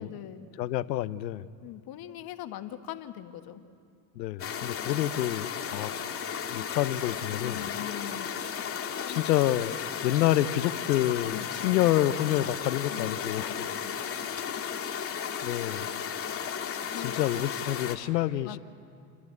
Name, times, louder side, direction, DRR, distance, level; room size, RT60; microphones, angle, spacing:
voice 1, 0.0-0.5 1.6-3.6 7.3-8.3 9.0-9.2 11.2-11.7 12.9-13.5 13.8-13.9 16.9-17.2 18.4-18.6, left 13 dB, 45° left, 8 dB, 1.5 m, -41 dB
voice 2, 0.6-1.5 4.2-5.9 6.5-7.6 9.1-9.8 10.0-13.5 15.4-15.9 17.0-18.6, left 13 dB, 90° left, 16 dB, 0.8 m, -28 dB
sound 1, 4.4-18.0, left 7 dB, 25° left, 1.9 m, -34 dB
29.5 x 12.0 x 8.1 m, 2.4 s
hypercardioid pair, 100°, 49 cm